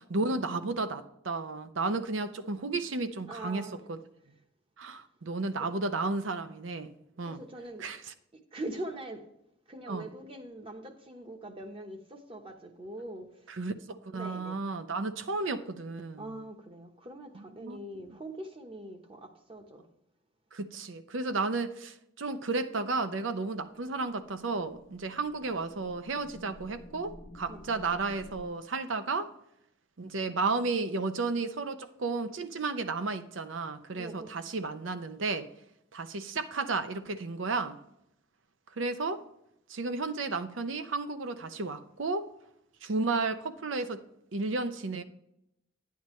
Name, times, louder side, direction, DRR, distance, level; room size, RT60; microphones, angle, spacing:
voice 1, 0.1-4.0 4.8-6.9 7.2-7.4 7.8-8.1 9.9-10.1 13.5-16.3 17.3-18.0 20.5-29.3 30.0-35.5 35.9-37.8 38.8-39.2 39.7-42.3 42.8-44.0 44.3-45.0, right 3 dB, 85° right, 0.7 m, -33 dB
voice 2, 3.3-3.8 7.2-7.9 8.5-9.2 9.7-13.3 14.1-14.6 16.2-19.9 27.5-27.6 33.9-34.4, right 1 dB, 30° right, 1.0 m, -42 dB
sound 1, 23.7-28.4, left 1 dB, 90° left, 1.0 m, -51 dB
10.5 x 9.4 x 3.1 m
head